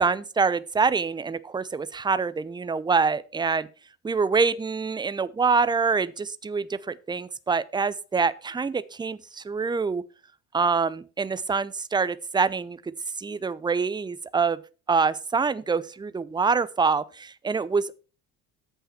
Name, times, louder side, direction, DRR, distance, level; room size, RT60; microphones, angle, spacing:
voice 1, 0.0-3.7 4.0-10.0 10.5-12.8 13.2-14.6 14.9-18.0, right 5 dB, 10° right, 0.6 m, -25 dB
13.5 x 5.6 x 4.4 m
figure-of-eight pair, 60°, 40 cm